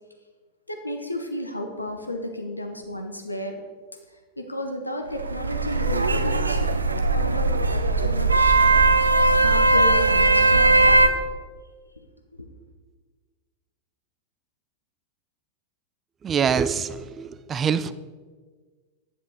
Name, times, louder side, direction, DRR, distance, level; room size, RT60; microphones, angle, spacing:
voice 1, 0.7-3.6 4.4-6.7 7.1-8.6 9.4-11.0 12.3-12.5, left 1 dB, 85° left, 4 dB, 0.9 m, -32 dB
sound 1, 5.1-11.1, right 2 dB, 80° right, 0.5 m, -19 dB
voice 2, 16.2-17.9, right 7 dB, 25° right, 15 dB, 0.4 m, -25 dB
10.0 x 7.1 x 4.3 m, 1.5 s
figure-of-eight pair, 90°, 0 cm